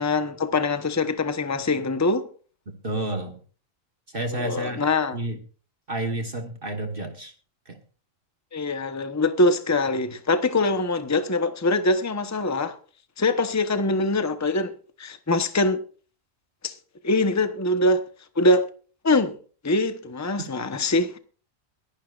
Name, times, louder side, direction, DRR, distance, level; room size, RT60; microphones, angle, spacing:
voice 1, 0.0-2.3 4.3-5.2 8.5-12.8 13.2-15.8 16.6-16.8 17.0-18.0 18.4-18.6 19.0-19.4 19.6-21.2, left 2 dB, 15° left, 0.9 m, -23 dB
voice 2, 2.8-3.4 4.1-4.8 5.1-5.4 5.9-7.3 7.7-7.8, right 1 dB, 45° right, 1.5 m, -30 dB
22.5 x 11.5 x 2.5 m
omnidirectional pair, 1.4 m